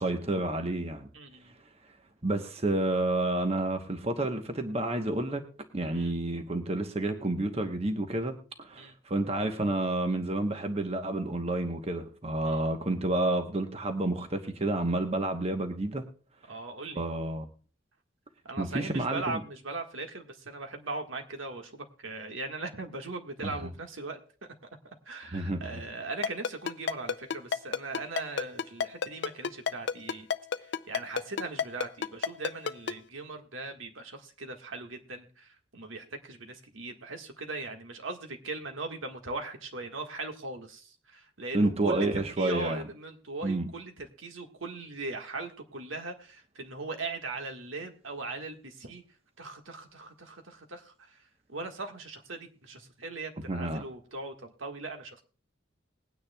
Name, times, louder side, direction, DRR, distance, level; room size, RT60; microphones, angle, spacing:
voice 1, 0.0-1.1 2.2-5.4 5.7-16.0 17.0-17.5 18.6-19.4 23.4-23.6 25.3-25.8 41.5-42.8 43.4-43.7 53.5-53.8, right 2 dB, 30° right, 6 dB, 1.0 m, -30 dB
voice 2, 1.1-1.5 5.9-6.1 8.8-8.9 12.4-12.6 16.5-17.0 18.4-24.2 24.8-30.3 30.6-49.0 49.4-51.2 51.5-55.2, right 3 dB, 75° right, 4 dB, 1.6 m, -39 dB
Ringtone, 26.2-32.9, left 6 dB, 55° left, 0.4 m, -29 dB
21.0 x 9.6 x 2.3 m, 0.39 s
head